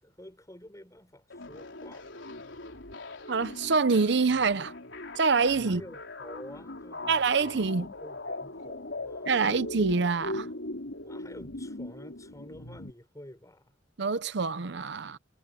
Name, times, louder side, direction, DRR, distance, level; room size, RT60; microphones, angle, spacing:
voice 1, 0.0-2.2 5.6-7.3 7.7-9.7 11.0-13.8, left 1 dB, 20° left, 4.9 m, -49 dB
sound 1, 1.3-12.9, left 2 dB, 80° left, 3.8 m, -40 dB
voice 2, 3.3-4.7 5.2-5.8 7.1-7.9 9.3-10.5 14.0-15.2, right 4 dB, 65° right, 0.7 m, -25 dB
head